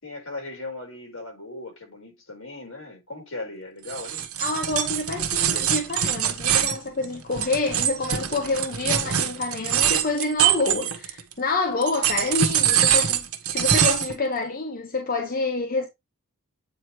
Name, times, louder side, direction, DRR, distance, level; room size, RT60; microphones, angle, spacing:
voice 1, 0.0-4.3 12.0-12.2, left 2 dB, 65° left, 4.5 m, -38 dB
sound 1, 3.9-11.3 11.8-14.2, right 9 dB, 85° right, 1.2 m, -23 dB
voice 2, 4.4-15.9, left 3 dB, 40° left, 1.1 m, -27 dB
8.5 x 3.2 x 4.7 m
head